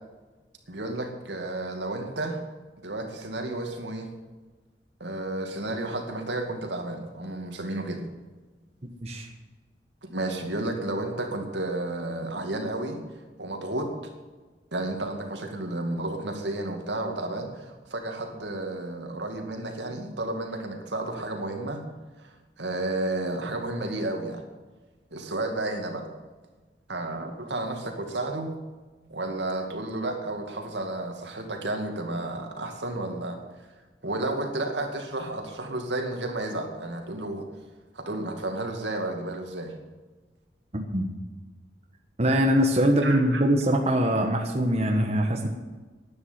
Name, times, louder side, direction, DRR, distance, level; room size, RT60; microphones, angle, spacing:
voice 1, 0.7-2.4 2.8-4.1 5.0-8.0 10.0-13.0 13.4-13.9 14.7-21.8 22.2-24.4 25.1-26.1 26.9-28.5 29.1-33.4 34.0-37.5 37.9-39.7 43.0-43.4, right 2 dB, 80° right, 3 dB, 2.4 m, -32 dB
voice 2, 40.7-41.1 42.2-45.5, equal, 35° right, 2 dB, 1.3 m, -23 dB
11.5 x 9.5 x 9.0 m, 1.3 s
head